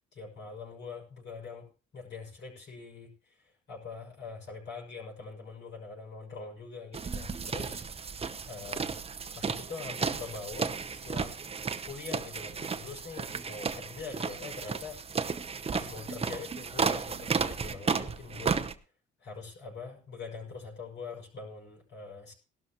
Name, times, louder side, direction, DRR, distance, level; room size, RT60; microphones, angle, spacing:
voice 1, 0.1-1.7 1.9-7.8 8.5-9.0 9.4-11.4 11.9-15.3 15.7-18.6 19.2-22.3, left 4 dB, 65° left, -2 dB, 6.2 m, -43 dB
sound 1, 6.9-18.7, right 5 dB, 30° right, 0.8 m, -33 dB
18.5 x 12.5 x 3.0 m, 0.35 s
cardioid pair, 90°, 20 cm